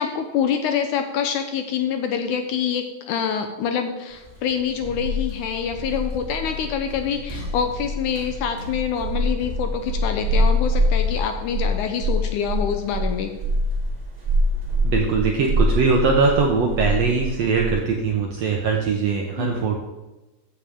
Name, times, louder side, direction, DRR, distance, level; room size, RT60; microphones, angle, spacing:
voice 1, 0.0-13.3 19.4-19.7, left 7 dB, 75° left, 6 dB, 2.0 m, -26 dB
sound 1, 4.2-17.7, equal, 20° right, 1.0 m, -25 dB
voice 2, 14.8-19.8, right 4 dB, 75° right, 1 dB, 1.5 m, -21 dB
15.0 x 7.2 x 3.6 m, 1.1 s
omnidirectional pair, 4.1 m